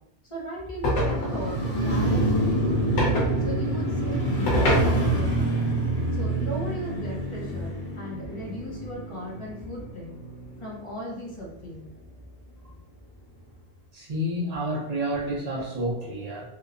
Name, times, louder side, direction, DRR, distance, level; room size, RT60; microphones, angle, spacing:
voice 1, 0.3-1.6 1.8-3.0 3.4-5.6 6.1-10.2 10.6-11.9, equal, 35° left, -3 dB, 0.6 m, -37 dB
sound 1, 0.8-1.6 3.0-3.3 4.5-5.3, left 1 dB, 85° left, 1.2 m, -24 dB
Motorcycle, 0.9-11.1 11.4-11.5, right 1 dB, 60° left, 0.9 m, -27 dB
voice 2, 13.9-16.4, equal, 45° right, -5 dB, 0.6 m, -29 dB
2.9 x 2.0 x 2.4 m, 0.84 s
omnidirectional pair, 1.2 m